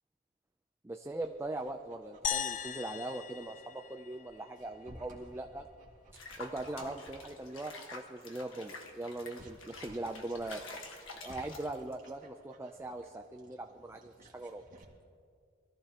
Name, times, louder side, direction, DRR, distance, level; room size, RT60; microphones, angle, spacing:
voice 1, 0.8-5.7 6.4-10.8 11.2-14.6, right 2 dB, 15° right, 4 dB, 0.5 m, -41 dB
Dog, 1.0-14.8, right 1 dB, 40° right, 2.1 m, -58 dB
sound 1, 2.2-4.7, left 8 dB, 40° left, 0.5 m, -38 dB
Water / Bathtub (filling or washing), 6.2-12.1, left 3 dB, 75° left, 1.6 m, -48 dB
23.5 x 14.5 x 2.9 m, 2.2 s
head